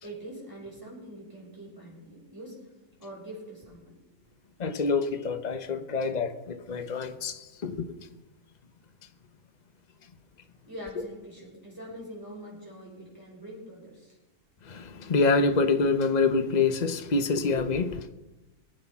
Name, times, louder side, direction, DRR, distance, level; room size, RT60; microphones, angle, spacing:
voice 1, 0.0-2.7 3.0-4.0 4.3-4.4 10.6-14.2, right 1 dB, 10° right, 6.2 m, -44 dB
voice 2, 4.6-7.9 14.7-18.1, left 4 dB, 35° left, 1.0 m, -26 dB
24.0 x 8.5 x 5.7 m
omnidirectional pair, 1.5 m